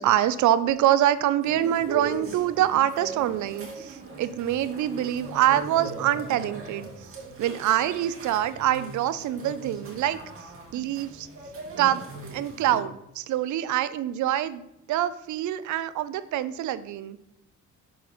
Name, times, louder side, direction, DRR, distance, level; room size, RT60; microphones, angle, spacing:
voice 1, 0.0-6.9 7.4-10.2 10.7-11.3 11.8-12.0 12.3-14.6 14.9-17.2, right 12 dB, 75° right, 14 dB, 0.5 m, -25 dB
sound 1, 1.4-12.8, right 3 dB, 45° right, 1.8 m, -39 dB
6.4 x 3.9 x 4.3 m, 0.81 s
cardioid pair, 90°, 30 cm